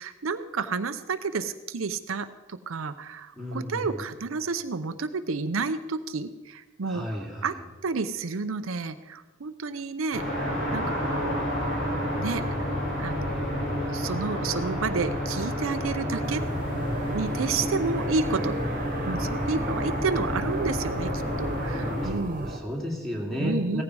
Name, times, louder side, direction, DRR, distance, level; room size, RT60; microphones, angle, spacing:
voice 1, 0.0-7.1 7.4-7.5 7.8-11.7 12.1-12.7 13.0-16.4 17.1-18.5 19.1-22.5 23.4-23.8, right 4 dB, 75° right, 10 dB, 0.6 m, -31 dB
voice 2, 3.4-4.0 6.8-7.6 22.0-23.8, left 1 dB, ahead, -1 dB, 2.6 m, -33 dB
sound 1, 10.1-22.1, equal, 60° left, 5.5 m, -30 dB
sound 2, 16.2-22.6, right 2 dB, 40° right, 1.4 m, -35 dB
16.0 x 14.5 x 4.8 m, 1.2 s
head